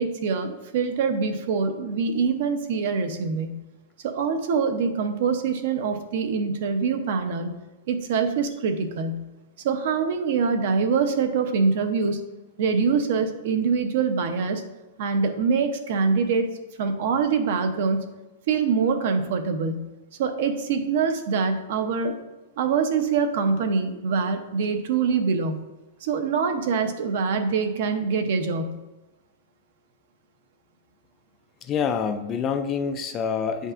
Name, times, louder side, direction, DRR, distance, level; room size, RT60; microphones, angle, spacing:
voice 1, 0.0-3.6 4.0-7.6 7.9-9.3 9.6-12.2 12.6-14.6 15.0-16.5 16.8-18.0 18.5-19.9 20.2-22.1 22.6-25.6 26.0-28.8, right 5 dB, 50° right, 7 dB, 0.7 m, -24 dB
voice 2, 31.6-33.7, left 6 dB, 20° left, 8 dB, 0.3 m, -26 dB
8.5 x 5.3 x 2.5 m, 1.1 s
supercardioid pair, 170°, 0 cm